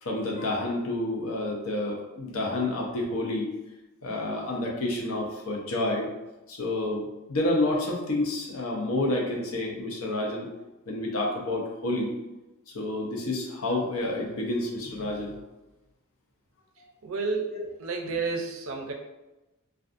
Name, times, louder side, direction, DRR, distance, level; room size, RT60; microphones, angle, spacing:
voice 1, 0.0-3.5 4.0-6.1 6.5-10.5 10.9-12.1 12.7-15.3, left 2 dB, 75° left, -1 dB, 0.6 m, -29 dB
voice 2, 17.0-18.9, right 4 dB, 70° right, 3 dB, 0.4 m, -31 dB
2.4 x 2.3 x 2.5 m, 1.0 s
head